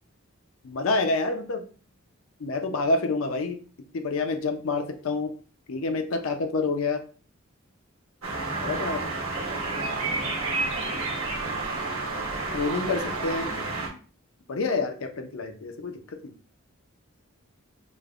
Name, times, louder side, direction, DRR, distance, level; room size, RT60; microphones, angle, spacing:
voice 1, 0.6-1.6 2.4-3.6 3.9-5.3 5.7-7.0 8.6-9.1 12.5-13.5 14.5-16.3, left 3 dB, 75° left, 6 dB, 0.5 m, -28 dB
sound 1, 8.2-13.9, right 3 dB, 75° right, 1.0 m, -30 dB
5.1 x 2.1 x 2.4 m, 0.38 s
head